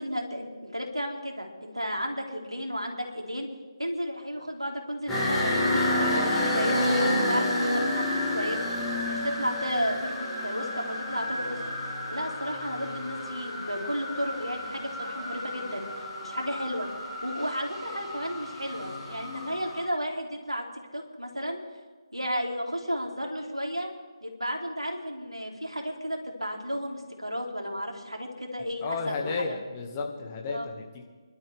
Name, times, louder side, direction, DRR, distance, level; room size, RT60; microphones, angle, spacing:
voice 1, 0.0-3.5 3.8-6.9 7.3-8.7 9.0-11.6 12.1-16.9 17.2-20.6 20.9-21.6 22.1-23.9 24.2-29.6 30.5-30.7, equal, 85° right, 1 dB, 3.0 m, -33 dB
sound 1, 5.1-19.8, left 1 dB, 5° left, 3.9 m, -30 dB
voice 2, 28.8-31.1, left 4 dB, 20° left, 2 dB, 1.7 m, -33 dB
24.0 x 12.0 x 3.4 m, 1.4 s
figure-of-eight pair, 150°, 3 cm